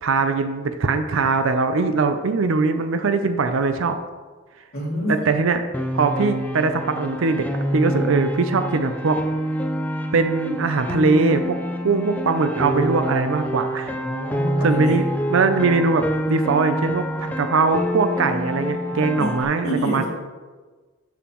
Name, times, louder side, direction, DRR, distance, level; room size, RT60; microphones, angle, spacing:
voice 1, 0.0-4.0 5.1-5.6 5.9-7.5 7.7-9.2 10.1-14.0 14.6-15.0 15.3-20.0, right 4 dB, 70° right, 8 dB, 0.5 m, -21 dB
voice 2, 4.7-5.2 14.0-15.0 18.9-19.3 19.6-20.0, equal, 45° left, -9 dB, 2.3 m, -27 dB
Piano, 5.7-19.4, equal, 5° left, 0.4 m, -27 dB
7.2 x 6.9 x 3.0 m, 1.3 s
head